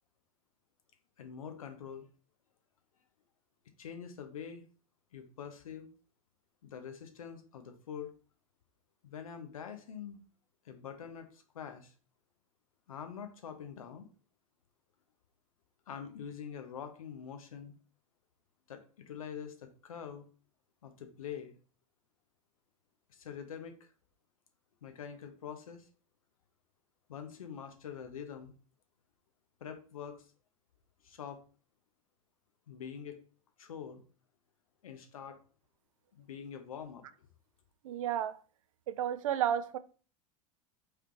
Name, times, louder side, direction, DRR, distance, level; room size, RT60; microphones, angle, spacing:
voice 1, 1.2-2.1 3.8-4.6 5.1-5.9 6.6-8.1 9.0-10.2 10.6-11.9 12.9-14.1 15.9-17.7 18.7-20.3 20.8-21.5 23.1-23.9 24.8-25.9 27.1-28.5 29.6-30.2 31.0-31.4 32.7-33.2 33.6-34.0 34.8-35.4 36.1-37.0, left 7 dB, 75° left, 0.8 m, -45 dB
voice 2, 37.8-38.4 38.9-39.8, right 10 dB, 65° right, 0.5 m, -32 dB
4.9 x 3.2 x 2.9 m
figure-of-eight pair, 85°, 18 cm